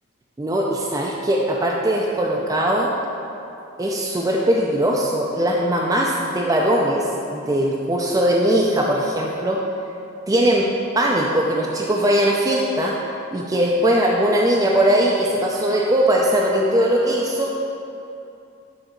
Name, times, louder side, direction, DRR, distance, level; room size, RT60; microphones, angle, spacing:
voice 1, 0.4-2.9 3.8-9.6 10.3-10.6 10.9-12.9 13.3-17.5, right 1 dB, 15° right, -2 dB, 0.4 m, -20 dB
8.9 x 3.9 x 4.5 m, 2.7 s
head